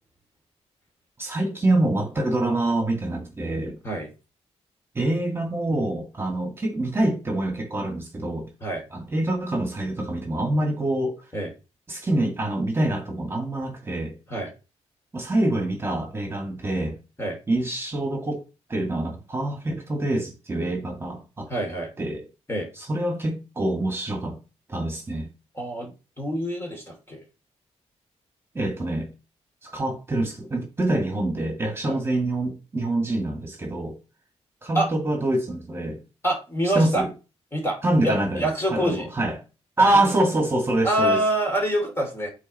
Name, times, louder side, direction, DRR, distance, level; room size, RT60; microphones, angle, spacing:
voice 1, 1.2-3.8 5.0-8.5 8.9-11.1 11.9-14.1 15.1-17.0 17.5-18.4 18.7-21.5 22.0-22.2 22.7-24.4 24.7-25.3 28.5-29.1 29.6-33.9 34.6-36.0 36.7-37.1 37.8-39.4 39.8-41.2, right 1 dB, 20° right, 1.9 m, -25 dB
voice 2, 21.5-21.9 22.5-22.7 25.5-27.2 31.8-32.0 34.7-34.9 36.2-37.0 37.5-37.8 38.0-39.1 40.8-42.3, right 1 dB, 20° left, 2.6 m, -26 dB
8.2 x 3.6 x 4.2 m
cardioid pair, 100°, 12 cm